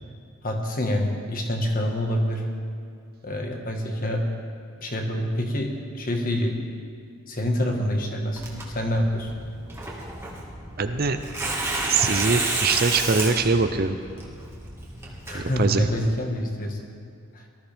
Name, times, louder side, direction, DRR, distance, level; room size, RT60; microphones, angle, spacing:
voice 1, 0.4-2.5 3.2-4.2 4.8-6.6 7.3-8.4 8.7-9.3 15.3-16.8 17.3-17.4, equal, 40° left, 2 dB, 1.6 m, -26 dB
Tearing, 8.4-16.1, right 2 dB, 10° right, 1.8 m, -31 dB
voice 2, 10.8-11.2 11.9-14.0 15.3-15.9, right 4 dB, 40° right, 8 dB, 0.6 m, -23 dB
19.0 x 13.5 x 3.5 m, 2.3 s
head